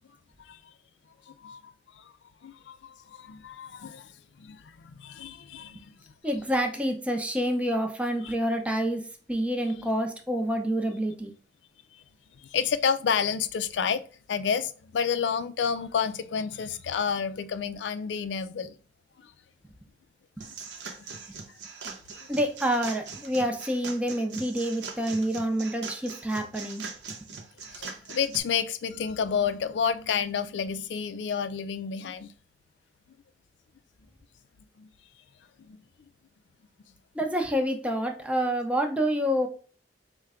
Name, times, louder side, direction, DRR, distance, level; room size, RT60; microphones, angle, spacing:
voice 1, 1.3-2.1 2.4-4.1 4.4-6.0 8.2-8.3 9.8-9.9 11.9-12.0 12.5-18.8 19.2-19.3 21.0-21.1 22.1-22.3 27.7-32.3 34.8-34.9 35.6-35.8, left 6 dB, 80° left, 0.4 m, -30 dB
voice 2, 6.2-9.0 9.3-11.3 22.3-26.8 37.1-39.5, equal, 5° right, 0.6 m, -27 dB
sound 1, 20.4-28.4, right 5 dB, 75° right, 0.7 m, -41 dB
4.4 x 2.1 x 3.6 m
head